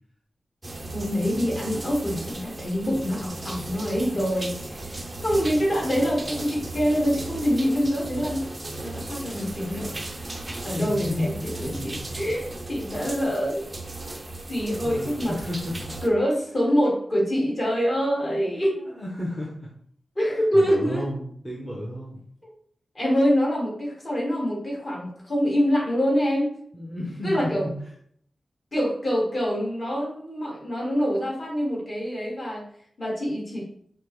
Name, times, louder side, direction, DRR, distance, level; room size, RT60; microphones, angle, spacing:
sound 1, 0.6-16.1, right 2 dB, 25° right, 0.4 m, -36 dB
voice 1, 0.9-5.0 5.2-8.5 8.8-10.3 10.6-13.7 14.5-15.3 16.0-18.8 20.1-21.0 22.4-22.5 22.9-26.5 27.2-27.6 28.7-32.7 33.0-33.7, equal, 35° left, -4 dB, 1.6 m, -25 dB
voice 2, 10.7-11.3 11.6-12.1 14.8-16.0 18.7-19.7 20.2-22.2 26.7-27.7, left 1 dB, 5° left, -5 dB, 0.7 m, -32 dB
4.9 x 2.1 x 3.0 m, 0.62 s
wide cardioid pair, 140°, 0 cm